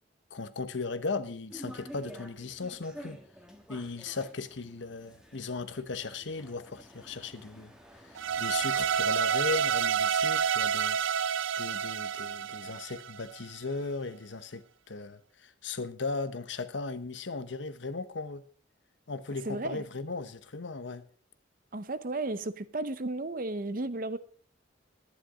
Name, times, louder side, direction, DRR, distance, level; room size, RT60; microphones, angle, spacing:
voice 1, 0.3-3.2 3.7-7.7 8.0-11.0 11.6-18.4 19.1-21.0, left 3 dB, 70° left, 0.9 m, -37 dB
sound 1, 1.5-9.7, equal, 5° right, 1.5 m, -50 dB
sound 2, 8.2-13.4, right 7 dB, 85° right, 0.5 m, -29 dB
voice 2, 19.5-19.8 21.7-24.2, right 2 dB, 45° right, 0.7 m, -34 dB
11.5 x 10.5 x 5.0 m
head